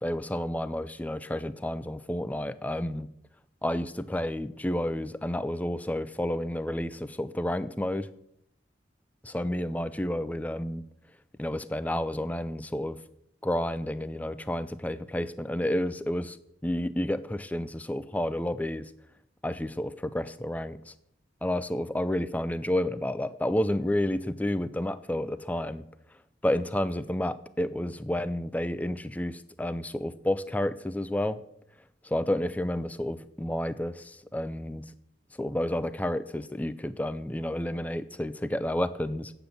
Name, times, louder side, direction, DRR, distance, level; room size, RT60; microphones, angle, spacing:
voice 1, 0.0-3.1 3.6-8.1 9.3-10.9 11.4-13.0 13.4-16.4 16.6-18.9 19.4-20.9 21.4-25.8 26.4-31.4 32.0-34.8 35.3-39.3, left 1 dB, 10° left, 14 dB, 0.4 m, -30 dB
8.5 x 7.9 x 6.8 m, 0.74 s
head